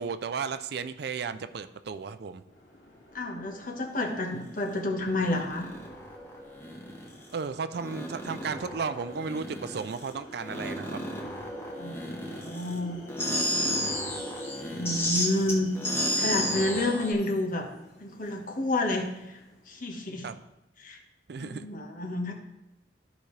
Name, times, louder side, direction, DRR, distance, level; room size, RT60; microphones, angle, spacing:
voice 1, 0.0-2.4 7.3-11.0 20.2-20.4 21.3-21.7, right 5 dB, 60° right, 11 dB, 0.4 m, -34 dB
sound 1, 2.4-19.9, left 1 dB, 80° left, 3.1 m, -49 dB
voice 2, 3.1-5.7 11.8-13.0 14.7-15.7 16.1-17.7 18.0-19.4 19.7-20.3 20.8-21.0 21.4-22.3, left 1 dB, 50° left, 1 dB, 1.3 m, -30 dB
sound 2, 4.0-4.4 5.1-7.4 7.7-10.1 10.4-12.8 13.1-17.1, equal, 15° left, 1.2 m, -33 dB
13.5 x 5.1 x 3.3 m, 0.94 s
head